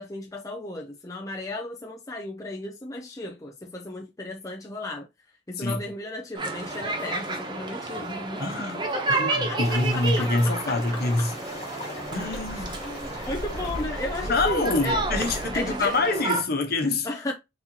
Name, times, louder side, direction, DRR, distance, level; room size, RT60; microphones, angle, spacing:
voice 1, 0.0-5.1 5.5-8.5 8.7-11.3 12.6-15.0 15.5-16.0 17.0-17.3, left 2 dB, 15° left, 0.5 m, -35 dB
sound 1, 6.4-16.4, right 2 dB, 25° right, 0.8 m, -31 dB
voice 2, 8.4-8.8 9.2-11.3 12.1-12.8 14.3-17.1, left 2 dB, 55° left, 1.1 m, -25 dB
sound 2, 9.6-16.0, equal, 35° left, 2.3 m, -37 dB
4.4 x 4.0 x 2.8 m
head